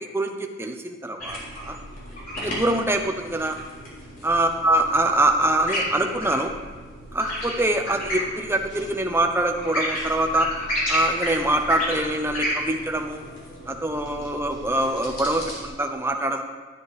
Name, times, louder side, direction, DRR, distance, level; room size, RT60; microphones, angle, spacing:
voice 1, 0.1-1.8 2.4-3.6 4.2-6.5 7.1-10.5 10.9-13.2 13.7-16.4, right 1 dB, 10° right, 4 dB, 0.9 m, -24 dB
sound 1, 1.2-15.7, equal, 45° left, 3.7 m, -33 dB
12.5 x 8.8 x 5.0 m, 1.3 s
head